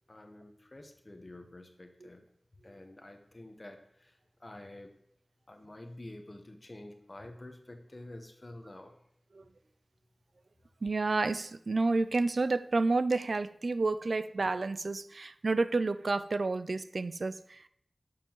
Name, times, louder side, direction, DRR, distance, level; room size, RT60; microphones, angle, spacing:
voice 1, 0.1-2.3 2.6-4.9 5.5-8.9, left 1 dB, 40° left, 0.9 m, -49 dB
voice 2, 10.8-17.7, right 3 dB, 75° right, 0.3 m, -30 dB
9.2 x 6.8 x 3.0 m
wide cardioid pair, 65°, 0 cm